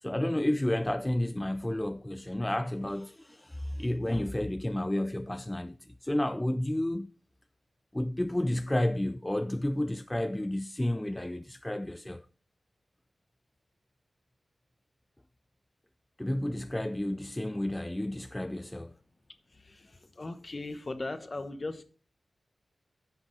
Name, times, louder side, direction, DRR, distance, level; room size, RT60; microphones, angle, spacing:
voice 1, 0.0-7.1 7.9-12.2 16.2-18.9, left 1 dB, 10° left, 0.3 m, -31 dB
voice 2, 19.5-21.8, left 2 dB, 35° left, 0.9 m, -38 dB
9.9 x 5.8 x 3.9 m
wide cardioid pair, 105°, 0 cm